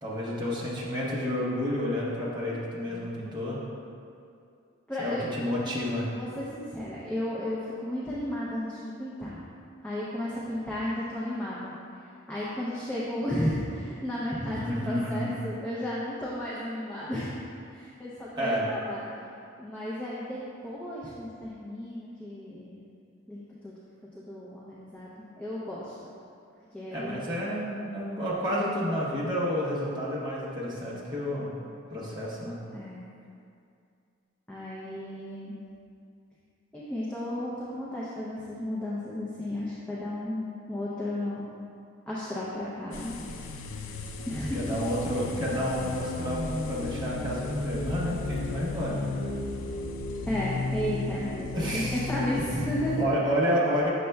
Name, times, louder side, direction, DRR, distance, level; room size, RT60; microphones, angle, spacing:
voice 1, 0.0-3.6 5.0-6.1 14.5-15.4 18.3-18.7 26.9-31.5 31.9-32.6 44.5-49.0 51.5-52.0 53.0-53.9, equal, 20° right, -7 dB, 1.0 m, -30 dB
voice 2, 4.9-5.2 6.1-9.4 9.8-11.7 12.3-19.0 19.6-22.8 23.3-23.7 24.1-26.0 26.7-27.2 32.7-33.0 34.5-35.6 36.7-41.4 42.1-43.2 44.3-44.8 50.2-53.0, left 1 dB, 5° left, -9 dB, 0.5 m, -33 dB
sound 1, 42.9-53.1, left 2 dB, 85° left, 0.4 m, -34 dB
6.6 x 6.4 x 2.3 m, 2.4 s
head